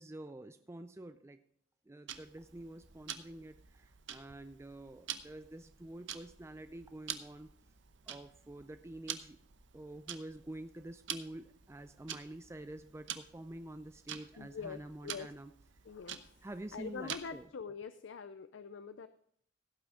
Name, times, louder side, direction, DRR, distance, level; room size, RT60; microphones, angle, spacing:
voice 1, 0.0-1.4 1.9-7.5 8.1-9.4 9.7-15.5 16.4-17.5, right 1 dB, 15° right, 9 dB, 0.4 m, -48 dB
Tick-tock, 2.1-17.5, right 9 dB, 70° right, 0.9 m, -48 dB
voice 2, 14.4-15.3 15.8-16.3 16.7-19.1, left 5 dB, 75° left, 12 dB, 0.5 m, -44 dB
16.5 x 6.0 x 4.9 m, 0.66 s
head